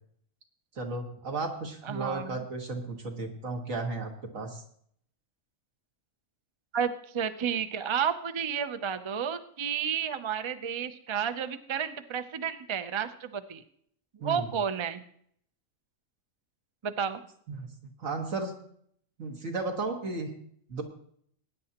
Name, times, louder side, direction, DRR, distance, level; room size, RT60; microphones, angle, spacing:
voice 1, 0.8-4.6 14.2-14.5 17.5-17.7 18.0-18.5 19.2-20.3 20.7-20.8, right 3 dB, 75° right, 2 dB, 2.0 m, -34 dB
voice 2, 1.8-2.4 6.7-13.6 14.2-15.0 16.8-17.2, right 7 dB, 40° right, 10 dB, 0.4 m, -31 dB
19.5 x 9.6 x 2.9 m, 0.65 s
omnidirectional pair, 1.4 m